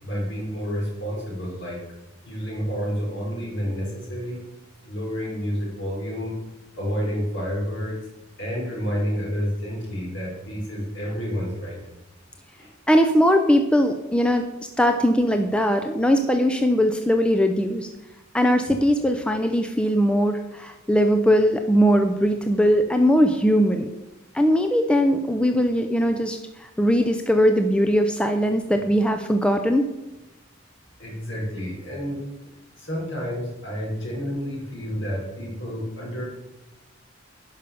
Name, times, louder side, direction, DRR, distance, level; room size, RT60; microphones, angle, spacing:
voice 1, 0.0-1.8 2.2-4.4 4.8-6.4 6.8-8.0 8.4-11.8 12.5-12.7 31.0-32.2 32.8-36.2, equal, 65° left, -3 dB, 4.6 m, -29 dB
voice 2, 12.9-14.5 14.8-17.9 18.3-23.9 24.3-29.9, equal, 5° left, 5 dB, 0.5 m, -20 dB
10.0 x 5.7 x 6.9 m, 0.96 s
head